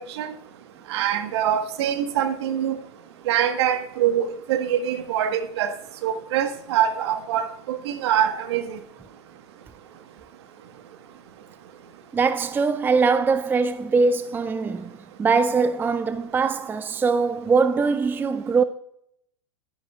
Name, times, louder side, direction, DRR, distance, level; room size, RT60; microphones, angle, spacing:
voice 1, 0.9-2.8 3.3-5.7 6.0-8.8, right 10 dB, 65° right, 1.4 m, -24 dB
voice 2, 12.1-18.6, right 4 dB, 15° right, 0.5 m, -22 dB
12.0 x 10.5 x 2.4 m
hypercardioid pair, 105°, 15 cm